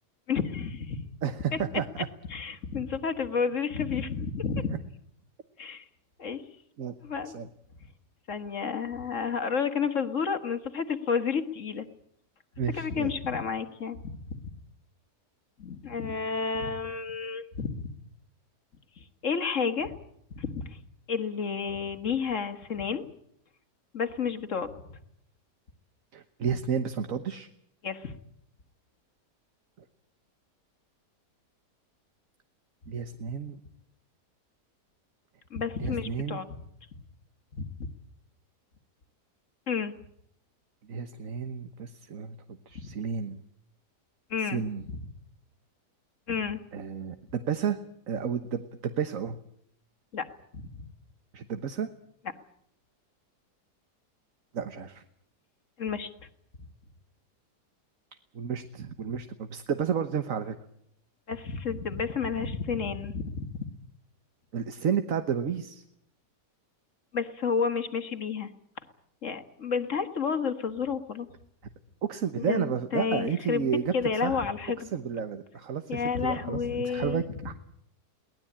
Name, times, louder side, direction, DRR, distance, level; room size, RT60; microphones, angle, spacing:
voice 1, 0.3-1.1 1.5-2.0 2.3-4.8 5.6-5.9 6.2-6.4 7.0-7.3 8.3-11.9 12.6-14.4 15.6-17.9 19.0-20.0 20.3-20.8 21.1-23.1 23.9-25.0 27.8-28.2 35.5-36.6 37.5-37.9 39.7-39.9 42.8-42.9 44.3-44.6 46.3-46.6 50.1-50.3 50.5-50.8 55.8-56.1 61.3-63.6 67.1-68.5 69.2-71.3 72.4-74.9 75.9-77.5, left 6 dB, 50° left, 8 dB, 1.9 m, -31 dB
voice 2, 1.2-1.8 4.7-4.8 6.8-6.9 7.3-7.5 12.6-13.1 26.1-27.5 32.9-33.6 35.8-36.4 40.9-42.3 42.7-43.4 44.4-44.8 46.7-47.8 48.1-49.4 51.3-51.9 54.5-55.0 58.3-60.5 64.5-65.8 72.1-73.9 74.2-74.4 74.9-77.5, right 7 dB, 55° right, 8 dB, 1.5 m, -31 dB
23.0 x 19.0 x 8.7 m, 0.72 s
omnidirectional pair, 1.8 m